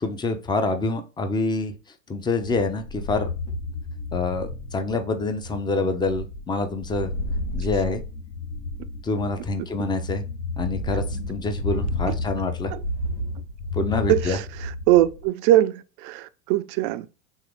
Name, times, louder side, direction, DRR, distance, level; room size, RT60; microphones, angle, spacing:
voice 1, 0.0-1.7 2.1-3.3 4.1-7.1 7.5-8.0 9.0-10.2 10.6-12.7 13.7-14.4, left 3 dB, 10° left, 0.5 m, -26 dB
sound 1, 2.4-15.2, left 2 dB, 60° left, 1.3 m, -32 dB
voice 2, 14.1-14.4 14.9-17.1, right 14 dB, 45° right, 0.4 m, -21 dB
3.7 x 3.0 x 3.5 m
hypercardioid pair, 105°, 39 cm